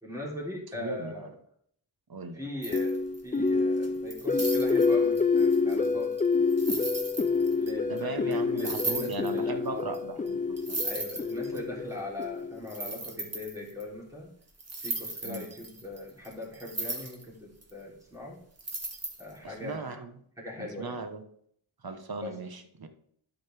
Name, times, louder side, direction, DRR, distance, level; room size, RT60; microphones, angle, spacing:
voice 1, 0.0-1.3 2.3-6.1 7.6-9.9 10.8-14.3 14.8-18.4 19.2-20.0 20.4-21.0 22.2-22.4, left 2 dB, 5° right, -4 dB, 3.3 m, -40 dB
voice 2, 0.7-1.3 2.1-2.4 7.9-10.9 15.2-15.5 19.4-20.2 20.6-21.2 21.8-22.9, right 3 dB, 50° right, 7 dB, 1.1 m, -38 dB
sound 1, 2.6-3.4 3.8-7.7 8.0-8.1 8.3-8.4 8.6-9.4 9.9-10.0 10.3-10.4 10.6-11.6 12.2-12.3 12.7-13.8 14.6-17.2 17.6-17.7 18.6-19.4, right 2 dB, 30° right, 1.6 m, -36 dB
sound 2, 2.7-12.8, left 4 dB, 20° left, 0.3 m, -27 dB
11.5 x 5.1 x 3.4 m, 0.64 s
wide cardioid pair, 90°, 47 cm